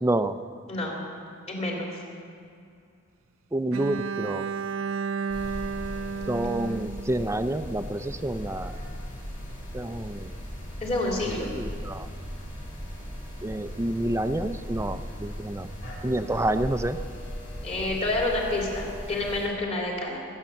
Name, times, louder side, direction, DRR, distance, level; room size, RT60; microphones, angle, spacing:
voice 1, 0.0-0.4 3.5-4.5 6.3-8.7 9.7-10.3 11.6-12.1 13.4-15.7 16.0-17.0, right 1 dB, 15° right, 11 dB, 0.5 m, -28 dB
voice 2, 0.7-1.0 1.5-1.9 10.8-11.5 15.8-15.9 17.6-20.2, left 2 dB, 30° left, -2 dB, 3.1 m, -28 dB
Bowed string instrument, 3.7-7.8, right 5 dB, 70° right, 0.5 m, -32 dB
sound 1, 5.3-19.5, equal, 55° left, 3.8 m, -38 dB
21.0 x 8.9 x 7.1 m, 2.5 s
head